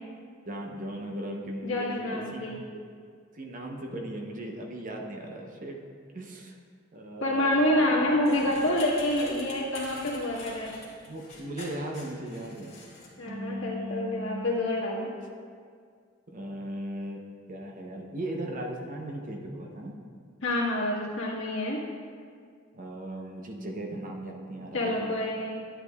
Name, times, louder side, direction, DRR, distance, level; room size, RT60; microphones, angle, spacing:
voice 1, 0.5-2.5 3.3-5.8 6.1-6.6 6.9-8.0 11.0-12.8 13.2-14.5 16.3-17.2 17.5-20.0 22.7-25.1, right 1 dB, 45° right, 2 dB, 0.8 m, -37 dB
voice 2, 1.6-2.6 7.2-10.7 13.2-15.1 20.4-21.8 24.7-25.5, left 1 dB, 80° left, -4 dB, 1.7 m, -27 dB
sound 1, 8.2-13.1, left 3 dB, 35° left, 1.9 m, -45 dB
11.0 x 8.4 x 2.4 m, 2.1 s
head